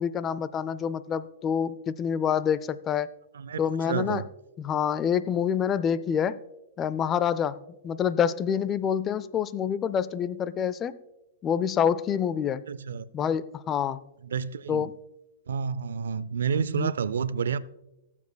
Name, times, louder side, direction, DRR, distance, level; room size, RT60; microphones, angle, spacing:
voice 1, 0.0-3.1 3.6-4.2 4.6-6.4 6.8-11.0 11.4-12.6 13.1-14.0 14.7-15.0 16.7-16.9, left 8 dB, 25° left, 0.3 m, -27 dB
voice 2, 3.9-4.2 12.7-13.1 14.2-14.9 15.5-17.6, right 6 dB, 85° right, 0.4 m, -29 dB
18.5 x 7.2 x 2.2 m
hypercardioid pair, 135°, 0 cm